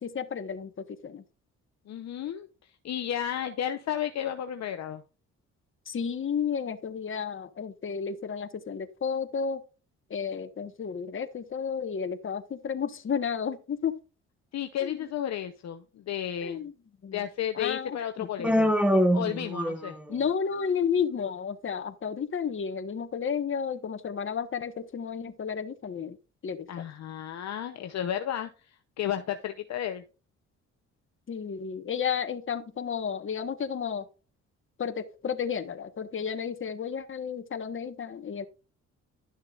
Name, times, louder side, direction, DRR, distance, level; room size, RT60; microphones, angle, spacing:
voice 1, 0.0-1.2 5.9-9.6 10.1-13.9 14.8-15.1 16.4-16.7 17.0-17.2 17.5-18.5 20.1-26.2 26.4-26.8 31.3-34.1 34.8-38.5, left 7 dB, 40° left, 1.3 m, -32 dB
voice 2, 1.9-2.5 2.8-5.0 14.5-16.6 17.1-18.7 19.1-19.9 26.7-30.0, left 10 dB, 60° left, 0.8 m, -33 dB
Human voice, 18.4-20.1, equal, 5° right, 1.2 m, -24 dB
12.0 x 6.5 x 2.5 m
cardioid pair, 90°, 30 cm